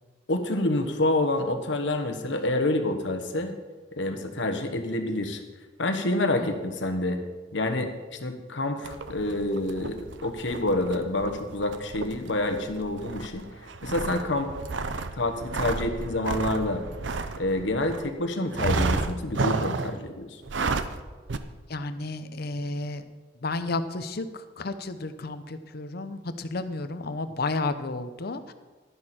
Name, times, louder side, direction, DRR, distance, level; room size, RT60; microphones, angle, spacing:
voice 1, 0.3-3.5 4.0-5.4 5.8-7.2 7.5-13.4 13.8-14.5 15.2-16.8 17.4-20.4, left 2 dB, 75° left, 6 dB, 1.3 m, -28 dB
sound 1, 8.8-18.1 18.5-20.0 20.4-21.0 21.3-21.4, right 3 dB, 70° right, 0.6 m, -31 dB
voice 2, 21.7-23.0 23.4-24.3 24.6-28.5, left 3 dB, 55° left, 10 dB, 0.7 m, -32 dB
12.0 x 11.0 x 4.4 m, 1.3 s
head